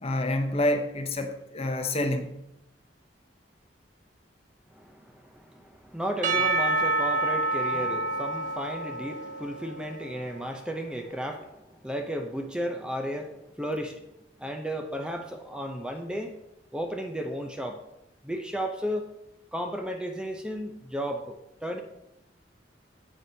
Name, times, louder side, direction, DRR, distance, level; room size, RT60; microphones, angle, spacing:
voice 1, 0.0-2.4, left 1 dB, 35° left, 6 dB, 0.8 m, -28 dB
voice 2, 4.7-14.0 14.4-16.4 16.7-17.8 18.2-19.1 19.5-21.8, equal, 5° right, 4 dB, 0.6 m, -34 dB
Percussion / Church bell, 6.2-10.4, right 2 dB, 45° right, 0.7 m, -28 dB
9.6 x 7.7 x 2.7 m, 0.87 s
head